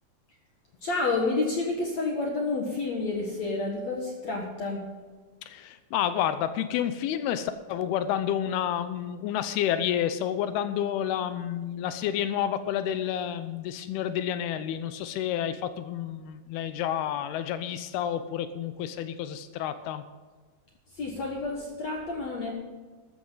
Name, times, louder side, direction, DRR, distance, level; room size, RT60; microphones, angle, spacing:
voice 1, 0.8-4.8 20.9-22.5, left 3 dB, 60° left, 0 dB, 1.9 m, -29 dB
voice 2, 5.5-20.0, left 10 dB, 85° left, 11 dB, 2.3 m, -30 dB
14.0 x 13.5 x 4.0 m, 1.4 s
omnidirectional pair, 5.4 m